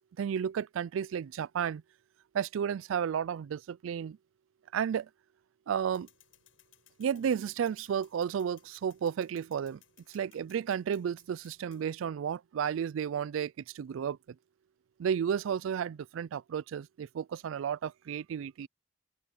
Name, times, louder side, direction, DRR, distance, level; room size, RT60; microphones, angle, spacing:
voice 1, 0.2-1.8 2.3-4.2 4.7-5.1 5.7-6.1 7.0-9.8 10.1-14.2 15.0-18.7, right 8 dB, 80° right, 0.3 m, -32 dB
sound 1, 5.9-11.9, left 11 dB, 85° left, 7.5 m, -65 dB
open air
head